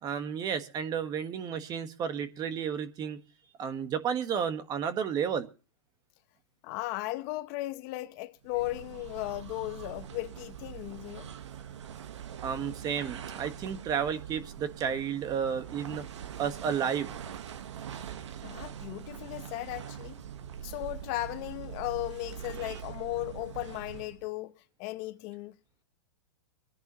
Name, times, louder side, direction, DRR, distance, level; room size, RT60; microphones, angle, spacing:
voice 1, 0.0-3.2 3.6-5.5 12.4-16.1 16.4-17.1 22.6-22.8, right 7 dB, 25° right, 1.5 m, -32 dB
voice 2, 6.6-11.3 18.4-20.2 20.6-25.5, left 19 dB, 40° left, 0.9 m, -36 dB
sound 1, 8.4-24.3, right 9 dB, 75° right, 1.4 m, -43 dB
24.5 x 10.5 x 3.0 m
hypercardioid pair, 135°, 15 cm